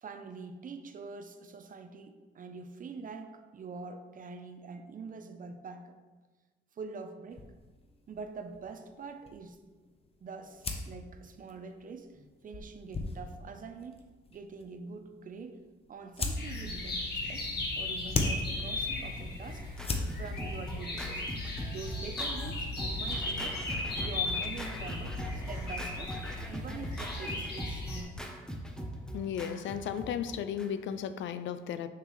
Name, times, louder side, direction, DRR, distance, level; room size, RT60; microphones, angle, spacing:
voice 1, 0.0-5.9 6.8-7.4 8.1-9.6 10.2-12.1 12.4-14.0 14.3-15.6 15.9-17.5 17.8-19.7 20.1-21.2 21.7-23.6 24.0-26.2 26.4-28.1, right 4 dB, 45° right, 8 dB, 0.7 m, -44 dB
sound 1, 7.3-24.2, left 2 dB, 30° left, 0.9 m, -41 dB
sound 2, 16.4-28.0, left 2 dB, 55° left, 1.6 m, -37 dB
Scratching (performance technique), 18.9-31.0, right 1 dB, 5° left, 0.9 m, -41 dB
voice 2, 29.1-31.9, left 8 dB, 70° left, 11 dB, 0.5 m, -35 dB
6.5 x 5.9 x 3.2 m, 1.3 s
cardioid pair, 90°, 20 cm